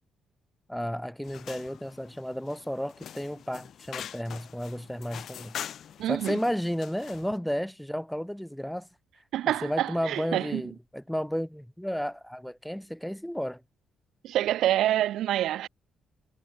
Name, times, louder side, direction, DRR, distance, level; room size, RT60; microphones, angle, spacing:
voice 1, 0.7-5.5 6.1-8.9 9.6-13.6, equal, ahead, 2.0 m, -32 dB
sound 1, 1.2-7.4, left 9 dB, 65° left, 0.6 m, -43 dB
voice 2, 6.0-6.4 9.3-10.6 14.2-15.7, right 13 dB, 80° right, 0.7 m, -27 dB
cardioid pair, 90°, 0 cm